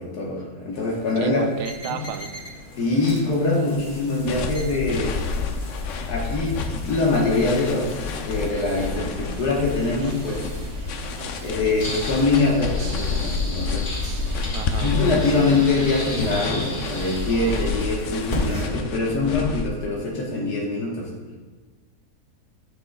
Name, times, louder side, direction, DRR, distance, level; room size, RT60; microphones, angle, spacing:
voice 1, 0.0-1.4 1.9-2.0 2.8-5.2 6.1-10.4 11.4-13.9 14.8-21.1, left 3 dB, 85° left, -3 dB, 1.7 m, -23 dB
sound 1, 0.7-18.6, left 1 dB, 35° left, 1.7 m, -37 dB
voice 2, 1.2-2.3 14.5-14.9, right 8 dB, 85° right, 8 dB, 1.1 m, -32 dB
sound 2, 4.3-19.7, left 4 dB, 65° left, 0.8 m, -30 dB
sound 3, 8.6-17.8, right 2 dB, 55° right, 1.0 m, -36 dB
12.0 x 6.4 x 2.2 m, 1.4 s
omnidirectional pair, 1.7 m